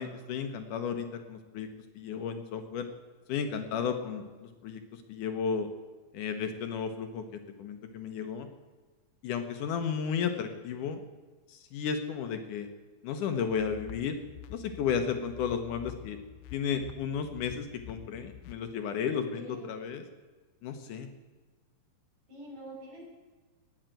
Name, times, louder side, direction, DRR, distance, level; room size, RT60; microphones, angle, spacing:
voice 1, 0.0-1.7 2.0-2.9 3.3-5.7 6.1-7.2 7.6-8.5 9.2-11.0 11.5-12.7 13.0-14.2 14.5-16.2 16.5-20.0 20.6-21.1, left 7 dB, 70° left, 7 dB, 2.4 m, -33 dB
sound 1, 13.5-18.5, left 11 dB, 90° left, 2.4 m, -47 dB
voice 2, 19.3-19.7 22.3-23.1, right 2 dB, 55° right, -4 dB, 6.8 m, -46 dB
18.0 x 7.4 x 9.0 m, 1.3 s
omnidirectional pair, 3.9 m